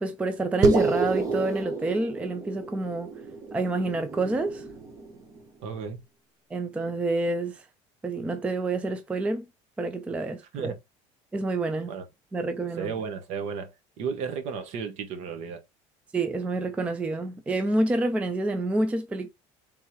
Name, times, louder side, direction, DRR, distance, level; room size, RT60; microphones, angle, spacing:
voice 1, 0.0-3.1 3.5-4.6 6.5-7.7 8.0-9.5 9.8-10.7 11.3-11.9 12.3-12.9 16.1-19.3, right 2 dB, 10° right, 0.3 m, -28 dB
sound 1, 0.6-5.4, right 4 dB, 25° right, 0.8 m, -29 dB
voice 2, 5.6-6.0 10.5-10.8 11.9-12.0 12.7-13.7 14.0-15.6, right 6 dB, 55° right, 1.0 m, -33 dB
3.6 x 2.9 x 4.6 m
cardioid pair, 170°, 14 cm